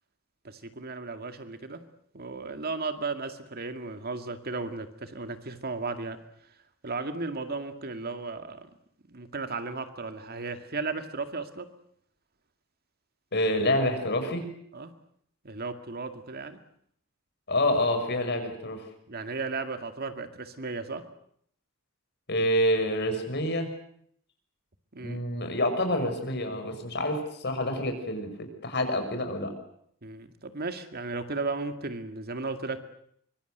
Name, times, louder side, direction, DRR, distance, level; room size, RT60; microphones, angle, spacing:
voice 1, 0.4-1.8 2.1-6.2 6.8-8.7 9.1-11.7 14.7-14.9 15.4-16.6 19.1-21.0 24.9-25.2 30.0-32.9, right 3 dB, 50° right, 8 dB, 2.2 m, -35 dB
voice 2, 13.3-14.5 17.5-18.8 22.3-23.7 25.0-29.5, left 1 dB, 55° left, 6 dB, 6.1 m, -27 dB
24.5 x 24.0 x 8.1 m, 0.67 s
head